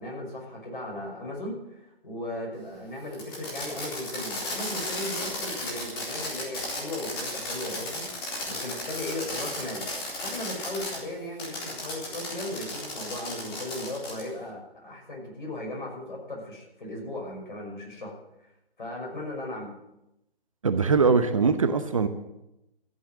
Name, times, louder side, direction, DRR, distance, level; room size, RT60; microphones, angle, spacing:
voice 1, 0.0-9.9 10.2-18.2 18.8-19.7 21.1-21.2, left 1 dB, 55° left, -1 dB, 5.9 m, -37 dB
Fireworks, 3.1-11.0 11.4-14.3, left 1 dB, 25° left, 3.9 m, -34 dB
voice 2, 20.6-22.1, right 5 dB, 35° right, 9 dB, 0.8 m, -22 dB
13.5 x 8.9 x 7.7 m, 0.89 s
figure-of-eight pair, 145°, 30 cm